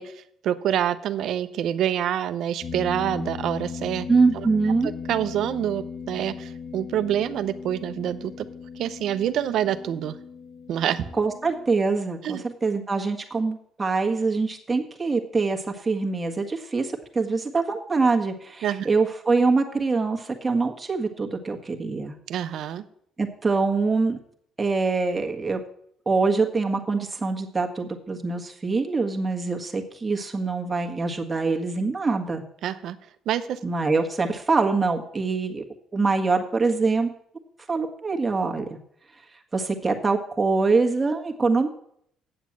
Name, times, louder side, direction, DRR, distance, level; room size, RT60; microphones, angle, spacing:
voice 1, 0.0-4.1 5.1-8.3 8.8-10.2 10.7-11.1 12.2-12.4 18.6-18.9 22.3-22.8 32.6-33.0 33.3-33.6, right 10 dB, 70° right, 12 dB, 0.8 m, -26 dB
sound 1, 2.6-11.6, left 6 dB, 55° left, 1.5 m, -37 dB
voice 2, 4.1-4.9 11.2-22.2 23.2-24.2 24.6-25.6 26.0-32.4 33.6-35.6 35.9-37.1 37.7-38.8 39.5-41.7, right 4 dB, 20° right, 2 dB, 1.6 m, -24 dB
8.9 x 7.3 x 7.4 m, 0.68 s
cardioid pair, 105°, 0 cm